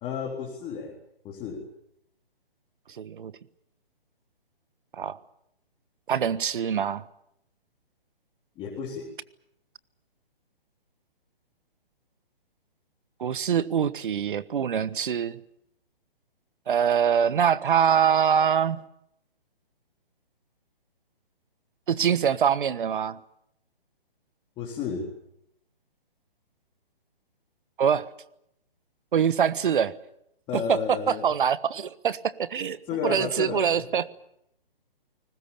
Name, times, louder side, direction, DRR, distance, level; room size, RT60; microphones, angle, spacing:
voice 1, 0.0-1.0 1.2-1.6 8.6-9.1 24.6-25.1 30.5-31.3 32.9-33.8, left 6 dB, 20° left, -1 dB, 3.8 m, -32 dB
voice 2, 3.0-3.3 5.0-5.2 6.1-7.0 13.2-15.4 16.7-18.8 21.9-23.2 27.8-28.0 29.1-29.9 30.5-34.1, right 8 dB, 60° right, 16 dB, 1.3 m, -24 dB
30.0 x 20.0 x 7.1 m, 0.78 s
hypercardioid pair, 145°, 29 cm